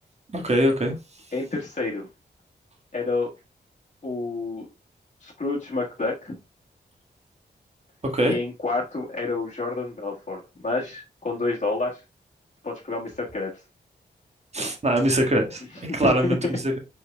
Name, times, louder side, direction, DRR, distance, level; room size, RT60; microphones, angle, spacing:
voice 1, 0.3-0.9 8.1-8.4 14.5-16.8, right 1 dB, 35° right, 1.7 m, -23 dB
voice 2, 1.3-2.1 2.9-3.3 4.0-4.7 5.2-6.4 8.2-12.0 12.6-13.5 15.9-16.5, left 3 dB, 40° left, 1.5 m, -29 dB
5.2 x 4.6 x 2.3 m
cardioid pair, 55°, 18 cm